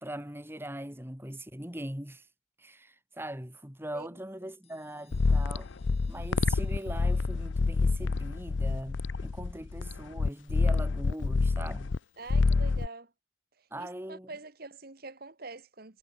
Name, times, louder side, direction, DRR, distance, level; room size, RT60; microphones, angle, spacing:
voice 1, 0.0-2.2 2.6-5.7 6.1-11.9 13.7-14.3, right 1 dB, 10° right, 3.2 m, -41 dB
sound 1, 4.6-8.2, left 4 dB, 30° left, 6.8 m, -65 dB
sound 2, 5.1-12.0 12.3-12.9, left 3 dB, 75° left, 0.6 m, -27 dB
voice 2, 12.2-13.1 13.6-16.0, right 3 dB, 50° right, 1.8 m, -45 dB
head